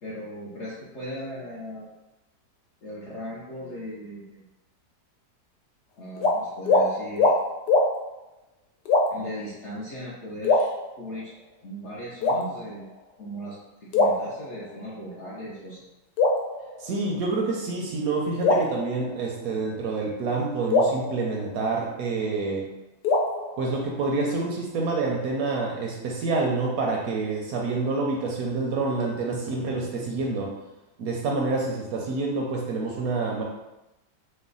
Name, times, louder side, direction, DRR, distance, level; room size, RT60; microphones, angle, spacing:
voice 1, 0.0-1.9 2.8-4.4 6.0-7.3 9.1-10.7 11.0-11.3 11.6-12.9 13.2-15.8, equal, 65° left, -6 dB, 0.7 m, -38 dB
sound 1, 6.2-6.4 6.7-6.9 7.2-7.4 7.7-7.9 8.9-9.3 10.4-11.3 12.2-12.9 13.9-14.9 16.2-17.3 18.4-19.6 20.7-22.1 23.0-24.3, left 2 dB, 80° left, 1.2 m, -24 dB
voice 2, 16.8-22.7 23.6-30.5 31.0-33.4, right 3 dB, 70° right, -1 dB, 0.9 m, -27 dB
3.2 x 2.1 x 3.7 m, 0.95 s
omnidirectional pair, 1.8 m